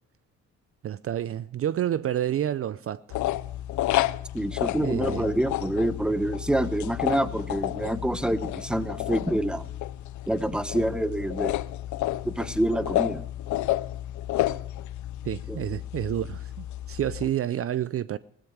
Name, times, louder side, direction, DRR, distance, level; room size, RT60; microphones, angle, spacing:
voice 1, 0.8-3.2 4.8-5.3 15.2-18.2, right 11 dB, 50° right, 0.5 m, -29 dB
sound 1, 3.1-17.3, left 15 dB, 75° left, 0.6 m, -31 dB
voice 2, 4.3-9.7 10.3-11.6 12.2-13.2 15.5-15.6, right 1 dB, 5° right, 1.0 m, -27 dB
16.5 x 13.5 x 4.7 m
cardioid pair, 90°, 30 cm